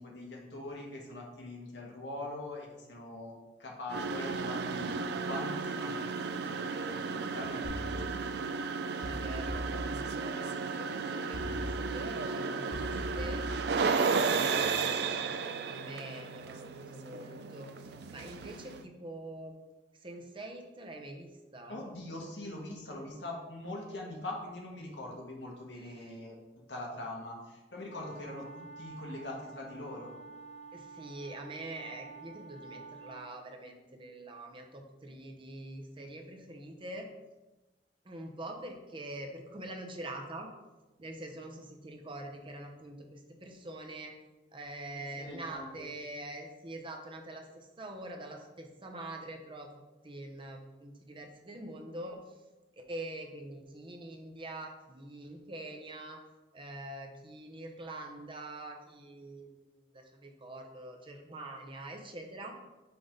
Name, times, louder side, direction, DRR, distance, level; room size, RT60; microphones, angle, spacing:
voice 1, 0.0-6.1 6.4-8.1 21.7-26.4 26.7-28.4 28.8-30.1 44.9-45.8, left 1 dB, 90° left, -1 dB, 1.5 m, -42 dB
sound 1, 3.9-18.8, right 4 dB, 65° right, 0.4 m, -34 dB
sound 2, 7.6-8.6 9.0-10.5 11.3-12.3 12.7-14.2 14.6-15.0, equal, 70° left, 1.9 m, -41 dB
voice 2, 8.9-13.4 14.1-17.7 18.1-19.5 20.0-21.8 25.7-26.2 30.7-37.1 38.0-40.5 41.0-44.1 44.5-49.7 50.0-52.2 52.7-56.2 56.5-59.6 59.9-62.5, right 1 dB, 30° right, 2 dB, 0.8 m, -44 dB
sound 3, 27.9-33.4, right 4 dB, 40° left, 0.7 m, -49 dB
6.0 x 3.7 x 5.2 m, 1.1 s
head